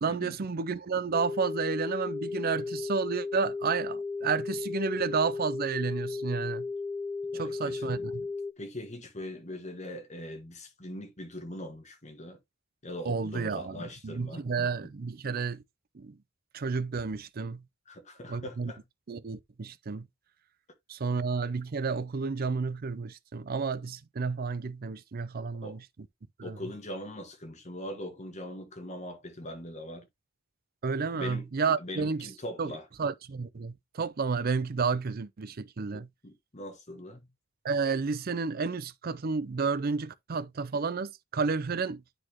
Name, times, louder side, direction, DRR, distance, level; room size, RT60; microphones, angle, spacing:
voice 1, 0.0-6.7 7.3-8.3 13.1-15.6 15.9-16.2 16.5-17.6 18.3-18.7 19.1-20.1 20.9-25.8 26.4-26.6 30.8-32.3 32.6-32.7 33.0-36.1 37.6-42.0, right 5 dB, 50° right, 0.5 m, -31 dB
sound 1, 1.1-8.5, left 4 dB, 5° left, 0.4 m, -35 dB
voice 2, 7.3-8.1 8.6-12.4 12.8-14.7 17.9-18.8 25.6-25.8 26.4-30.1 31.1-31.5 31.8-32.9 35.9-37.3, left 1 dB, 35° left, 1.7 m, -41 dB
9.8 x 4.2 x 3.0 m
head